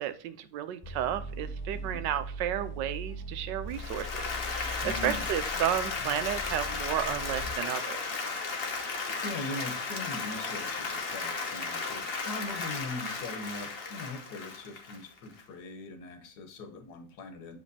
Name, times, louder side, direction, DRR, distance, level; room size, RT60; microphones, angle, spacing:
voice 1, 0.0-8.0, right 10 dB, 85° right, 11 dB, 1.3 m, -33 dB
sound 1, 0.8-7.6, equal, 10° left, 2.3 m, -40 dB
voice 2, 1.7-2.0 4.8-5.3 8.6-17.6, left 2 dB, 70° left, 6 dB, 1.6 m, -41 dB
Applause, 3.7-15.4, left 4 dB, 40° left, 1.0 m, -35 dB
7.6 x 5.2 x 2.7 m, 0.40 s
omnidirectional pair, 1.9 m